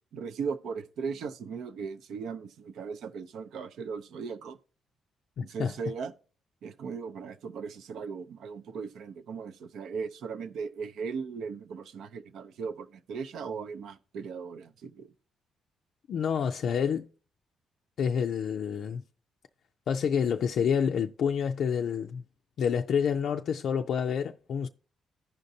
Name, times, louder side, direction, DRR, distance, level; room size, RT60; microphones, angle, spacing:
voice 1, 0.1-4.6 5.4-6.1 6.6-15.1, right 5 dB, 75° right, 0.6 m, -38 dB
voice 2, 5.4-5.7 16.1-17.1 18.0-19.0 19.9-22.2 22.6-24.7, left 7 dB, 65° left, 0.4 m, -28 dB
15.0 x 5.1 x 2.7 m
cardioid pair, 90°, 0 cm